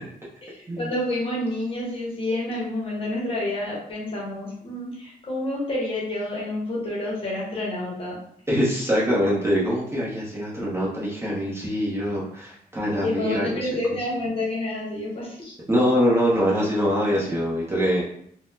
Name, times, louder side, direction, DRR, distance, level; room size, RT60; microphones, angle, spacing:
voice 1, 0.4-8.2 13.0-15.5, left 1 dB, 35° left, -4 dB, 0.9 m, -29 dB
voice 2, 8.5-13.7 15.7-18.0, equal, 15° right, -6 dB, 0.7 m, -23 dB
3.8 x 2.1 x 2.7 m, 0.65 s
wide cardioid pair, 180°, 16 cm